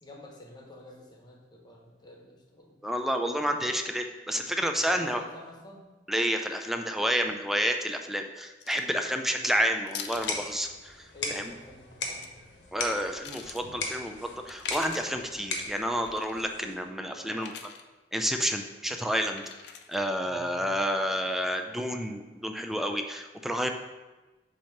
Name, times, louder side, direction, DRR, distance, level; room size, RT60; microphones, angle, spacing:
voice 1, 0.0-2.8 4.7-5.9 9.2-9.4 11.1-12.5 17.1-17.6 20.2-20.7, left 1 dB, 25° left, 0 dB, 1.1 m, -49 dB
voice 2, 2.8-5.2 6.1-10.9 11.3-11.5 12.7-17.5 18.1-19.4 19.9-23.7, equal, ahead, 4 dB, 0.4 m, -30 dB
sound 1, 8.6-9.0 9.9-10.5 11.9-12.3 12.9-13.6 14.5-15.2 16.1-16.4 17.4-17.8 19.4-20.0, left 7 dB, 65° left, 0.5 m, -42 dB
sound 2, 10.0-16.9, left 3 dB, 85° left, 1.1 m, -38 dB
7.4 x 2.9 x 5.7 m, 1.2 s
head